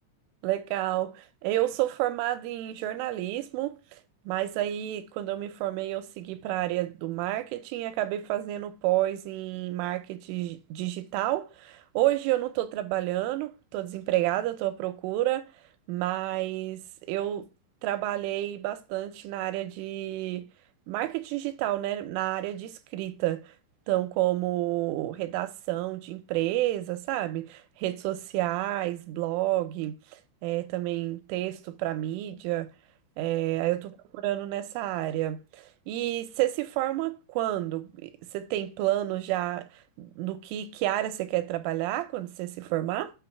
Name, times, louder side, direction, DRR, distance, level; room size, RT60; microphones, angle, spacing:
voice 1, 0.4-3.8 4.3-15.5 15.9-17.5 17.8-20.5 20.9-23.4 23.9-29.9 30.4-32.7 33.2-34.0 34.2-39.7 40.0-43.1, right 15 dB, 85° right, 3.2 m, -30 dB
8.6 x 3.2 x 5.8 m
omnidirectional pair, 5.6 m